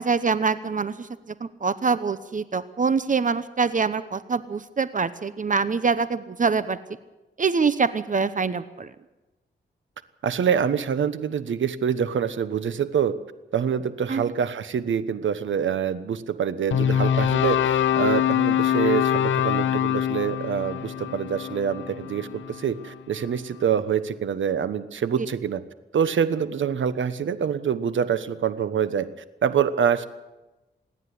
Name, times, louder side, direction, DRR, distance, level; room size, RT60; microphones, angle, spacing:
voice 1, 0.0-6.8 7.4-8.9 14.1-14.3, right 5 dB, 40° right, 13 dB, 0.9 m, -25 dB
voice 2, 10.2-13.2 13.5-25.6 25.9-29.1 29.4-30.0, right 7 dB, 80° right, 13 dB, 1.2 m, -25 dB
sound 1, 16.7-22.9, left 10 dB, 90° left, 0.8 m, -24 dB
26.5 x 10.0 x 10.0 m, 1.1 s
cardioid pair, 85°, 19 cm